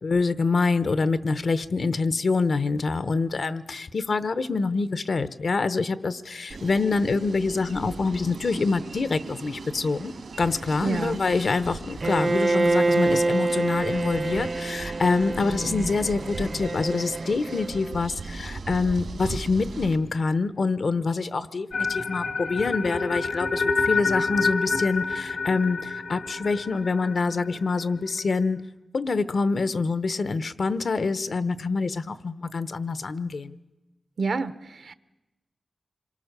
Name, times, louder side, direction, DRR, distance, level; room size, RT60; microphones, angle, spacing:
voice 1, 0.0-10.1 10.4-28.6 28.9-33.6, left 4 dB, 60° left, 13 dB, 0.9 m, -26 dB
sound 1, 6.5-20.0, right 4 dB, 85° right, 2.9 m, -38 dB
voice 2, 10.8-11.2 34.2-34.9, right 4 dB, 65° right, 12 dB, 1.0 m, -28 dB
Bowed string instrument, 12.0-18.0, right 2 dB, 40° right, 0.8 m, -26 dB
sound 2, 21.7-27.8, left 4 dB, 75° left, 1.8 m, -28 dB
26.5 x 22.5 x 6.7 m, 1.0 s
wide cardioid pair, 110°, 0 cm